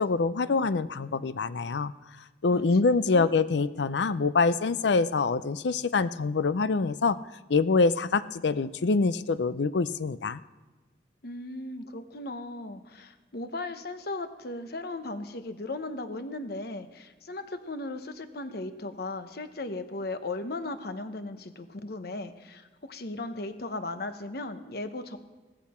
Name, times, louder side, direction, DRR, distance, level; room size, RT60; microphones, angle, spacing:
voice 1, 0.0-1.9 2.4-7.2 7.5-10.4, left 4 dB, 75° left, 15 dB, 0.5 m, -25 dB
voice 2, 2.5-3.3 11.2-25.2, left 2 dB, 60° left, 9 dB, 1.0 m, -37 dB
16.5 x 14.0 x 4.4 m, 1.2 s
head